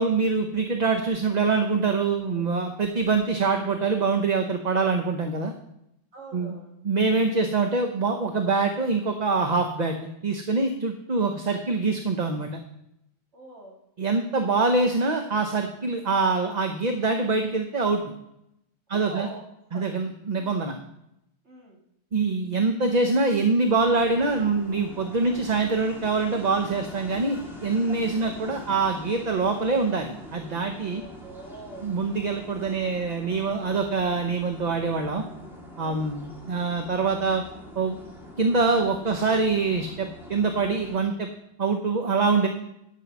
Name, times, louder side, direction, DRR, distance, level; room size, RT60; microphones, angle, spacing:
voice 1, 0.0-5.5 6.3-6.6 6.8-10.0 10.2-12.5 14.0-18.0 18.9-19.3 19.7-20.8 22.1-31.0 31.8-35.2 35.8-37.4 37.7-38.0 38.4-41.3 41.6-42.5, right 4 dB, 40° right, 4 dB, 0.9 m, -24 dB
voice 2, 6.1-6.7 13.3-13.8 18.9-19.5 19.7-19.9 21.4-21.8 28.1-28.4 30.9-31.9 35.8-36.1, right 2 dB, 80° right, -4 dB, 2.5 m, -44 dB
sound 1, 23.8-41.0, left 1 dB, ahead, 2.1 m, -44 dB
11.5 x 6.0 x 6.1 m, 0.80 s
omnidirectional pair, 1.1 m